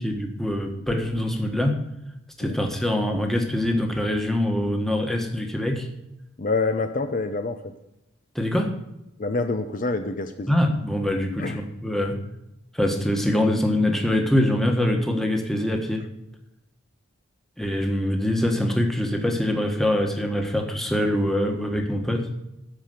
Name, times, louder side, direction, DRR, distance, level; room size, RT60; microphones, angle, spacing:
voice 1, 0.0-1.8 2.4-5.9 8.3-8.7 10.5-12.2 12.7-16.0 17.6-22.3, left 1 dB, ahead, 3 dB, 1.4 m, -24 dB
voice 2, 6.4-7.6 9.2-10.5 11.4-11.6, left 3 dB, 45° left, 7 dB, 0.6 m, -26 dB
13.0 x 5.1 x 7.8 m, 0.88 s
head